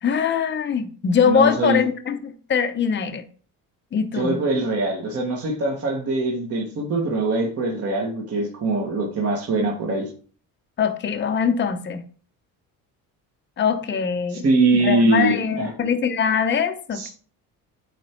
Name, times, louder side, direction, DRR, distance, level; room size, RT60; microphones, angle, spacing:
voice 1, 0.0-3.2 3.9-4.4 10.8-12.0 13.6-14.4 14.7-17.1, left 6 dB, 30° left, 7 dB, 0.7 m, -22 dB
voice 2, 1.2-1.8 4.1-10.1 14.3-15.7 16.9-17.1, right 2 dB, 40° right, -1 dB, 1.4 m, -22 dB
8.6 x 3.3 x 4.4 m, 0.42 s
cardioid pair, 135°, 36 cm